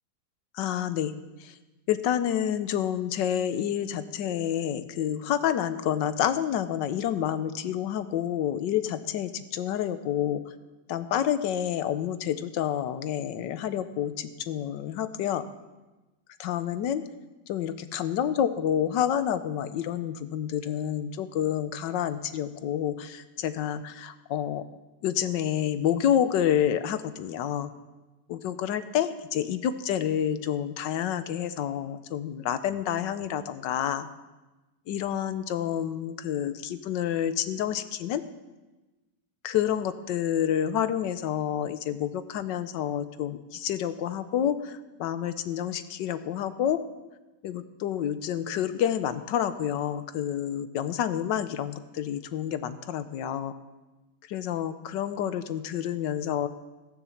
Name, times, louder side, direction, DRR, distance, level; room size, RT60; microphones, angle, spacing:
voice 1, 0.5-1.1 1.4-1.5 1.9-10.4 10.9-15.4 16.4-17.0 17.5-24.6 25.0-27.7 28.3-34.1 34.9-38.2 39.4-46.8 47.4-53.5 54.3-56.5, left 10 dB, 85° left, 12 dB, 1.4 m, -29 dB
14.0 x 10.0 x 7.2 m, 1.1 s
omnidirectional pair, 1.9 m